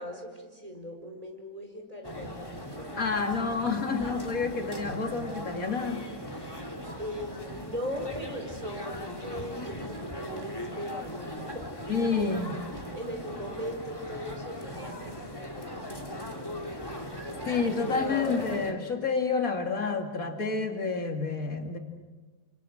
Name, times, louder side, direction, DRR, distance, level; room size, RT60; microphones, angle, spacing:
voice 1, 0.0-2.5 2.8-3.0 6.3-11.6 12.0-16.8 17.8-19.1, equal, 25° right, 3 dB, 4.7 m, -40 dB
sound 1, 2.0-18.7, equal, 15° left, 3.0 m, -39 dB
voice 2, 3.0-6.0 11.9-12.6 17.4-21.8, left 4 dB, 80° left, 4 dB, 2.7 m, -29 dB
29.0 x 25.0 x 7.9 m, 1.4 s
omnidirectional pair, 1.4 m